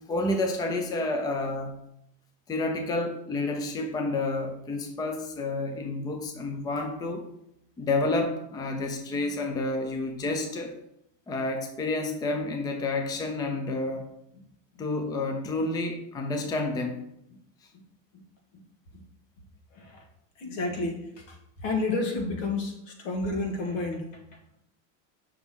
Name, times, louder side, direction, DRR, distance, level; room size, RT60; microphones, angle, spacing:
voice 1, 0.1-1.8 2.5-7.2 7.8-10.7 11.3-14.1 14.8-17.0, left 2 dB, 10° left, 4 dB, 0.5 m, -29 dB
voice 2, 19.7-20.0 20.4-21.4 21.6-24.2, left 3 dB, 75° left, 2 dB, 1.8 m, -30 dB
6.1 x 5.9 x 3.7 m, 0.77 s
supercardioid pair, 145°, 39 cm